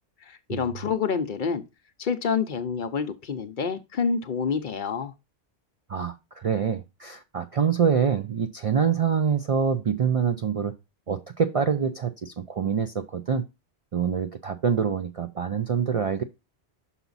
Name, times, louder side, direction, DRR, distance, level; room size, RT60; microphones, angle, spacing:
voice 1, 0.2-1.6 2.0-5.1, left 6 dB, 55° left, 0.7 m, -28 dB
voice 2, 5.9-10.7 11.1-13.4 13.9-16.2, right 7 dB, 50° right, 0.4 m, -25 dB
5.9 x 5.7 x 3.9 m
omnidirectional pair, 1.1 m